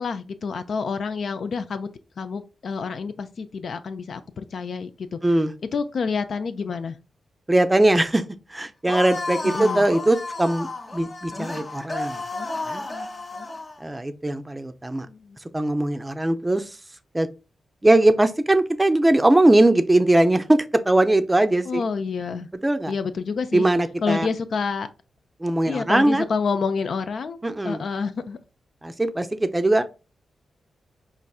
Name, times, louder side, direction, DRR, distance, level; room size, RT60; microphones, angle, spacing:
voice 1, 0.0-1.9 2.2-5.2 5.7-7.0 9.4-9.9 15.1-15.4 21.7-22.5 22.9-23.7 24.0-24.9 25.7-27.4 27.6-28.4, left 5 dB, 65° left, 0.3 m, -28 dB
voice 2, 5.2-5.5 7.5-8.2 8.5-12.2 12.6-12.8 13.8-15.1 15.5-16.7 17.1-17.3 17.8-21.8 22.6-22.9 23.5-24.3 25.4-26.3 27.4-27.9 28.8-29.8, right 1 dB, 20° right, 0.5 m, -20 dB
sound 1, 8.9-13.8, left 2 dB, 40° left, 0.7 m, -32 dB
4.1 x 2.5 x 2.3 m
supercardioid pair, 45°, 0 cm